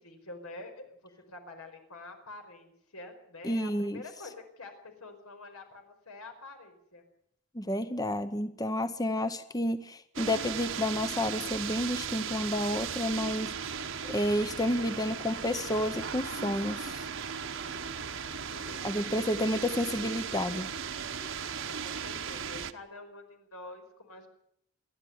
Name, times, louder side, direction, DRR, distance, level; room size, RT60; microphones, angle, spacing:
voice 1, 0.0-7.0 17.6-19.0 19.5-19.7 21.1-24.3, left 2 dB, 85° left, 5 dB, 5.0 m, -48 dB
voice 2, 3.4-4.0 7.5-13.5 14.1-17.1 18.8-20.7, left 1 dB, 15° left, 11 dB, 0.8 m, -30 dB
sound 1, 10.2-22.7, right 6 dB, 60° right, 1.1 m, -37 dB
27.5 x 11.5 x 9.4 m, 0.72 s
head